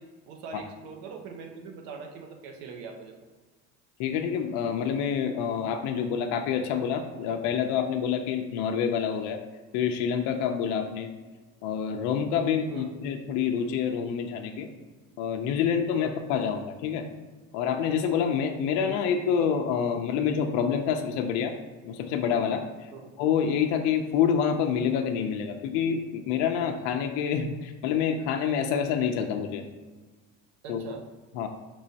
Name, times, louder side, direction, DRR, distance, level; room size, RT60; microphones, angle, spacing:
voice 1, 0.0-3.2 12.7-12.9 15.9-16.2 22.9-23.1 30.6-31.0, right 5 dB, 75° right, 4 dB, 0.8 m, -42 dB
voice 2, 4.0-9.4 9.7-11.1 11.6-14.7 15.2-17.1 17.5-21.5 21.8-22.9 23.2-29.6 30.7-30.8 31.3-31.5, left 7 dB, 70° left, 4 dB, 0.5 m, -27 dB
5.4 x 3.0 x 2.7 m, 1.3 s
cardioid pair, 155°, 29 cm